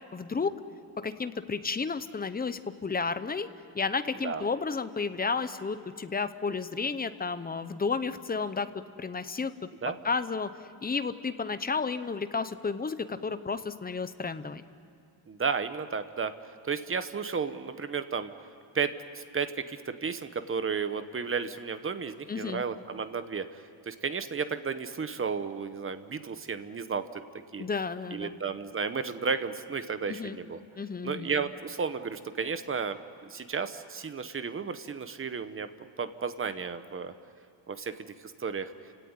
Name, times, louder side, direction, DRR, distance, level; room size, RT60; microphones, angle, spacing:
voice 1, 0.1-0.5 1.0-3.5 3.7-8.7 9.0-9.5 10.0-10.5 10.8-14.6 22.3-22.6 27.6-28.4 30.1-30.4 30.8-31.3, left 4 dB, 20° left, 12 dB, 0.7 m, -32 dB
voice 2, 15.3-16.3 16.7-18.3 18.7-27.2 27.5-27.6 28.1-30.6 31.0-35.7 36.0-37.1 37.7-37.9 38.4-38.7, right 5 dB, 25° right, 10 dB, 0.9 m, -33 dB
29.5 x 17.0 x 9.6 m, 2.6 s
wide cardioid pair, 180°, 49 cm